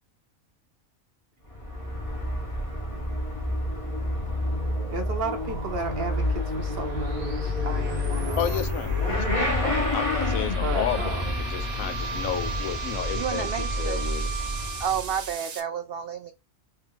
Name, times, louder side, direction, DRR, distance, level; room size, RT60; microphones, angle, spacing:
Motorcycle / Accelerating revving vroom, 1.4-15.3, left 1 dB, 25° left, 1.0 m, -29 dB
sound 1, 4.2-15.6, right 5 dB, 85° right, 1.4 m, -41 dB
voice 1, 4.9-8.6 9.6-9.8 10.6-11.2, right 3 dB, 50° right, 1.0 m, -34 dB
voice 2, 8.4-14.3, left 10 dB, 75° left, 1.0 m, -32 dB
Wind instrument woodwind instrument, 10.8-14.9, right 4 dB, 50° left, 1.1 m, -36 dB
voice 3, 13.1-14.0 14.8-16.3, right 8 dB, 70° right, 0.5 m, -30 dB
3.2 x 3.2 x 3.8 m
omnidirectional pair, 1.5 m